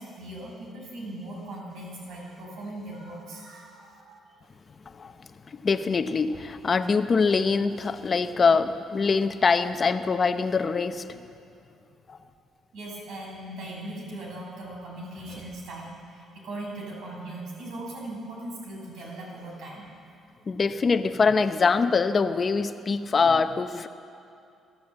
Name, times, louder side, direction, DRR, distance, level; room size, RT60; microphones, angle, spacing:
voice 1, 0.0-4.3 12.7-19.9, right 1 dB, 75° right, -1 dB, 6.5 m, -39 dB
voice 2, 5.5-11.2 12.1-12.2 20.5-23.9, left 4 dB, 35° left, 9 dB, 0.7 m, -24 dB
25.5 x 14.0 x 7.9 m, 2.5 s
cardioid pair, 125°, 0 cm